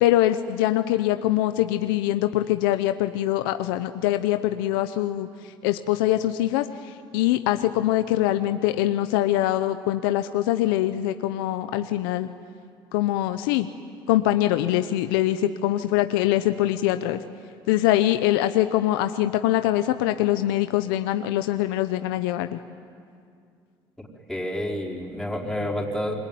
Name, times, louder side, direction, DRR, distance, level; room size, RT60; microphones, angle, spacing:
voice 1, 0.0-5.3 5.6-12.3 12.9-13.7 14.1-17.2 17.7-22.6, left 14 dB, 90° left, 9 dB, 0.8 m, -23 dB
voice 2, 24.3-26.1, left 1 dB, ahead, -3 dB, 5.1 m, -29 dB
27.5 x 21.5 x 9.4 m, 2.3 s
supercardioid pair, 75°, 11 cm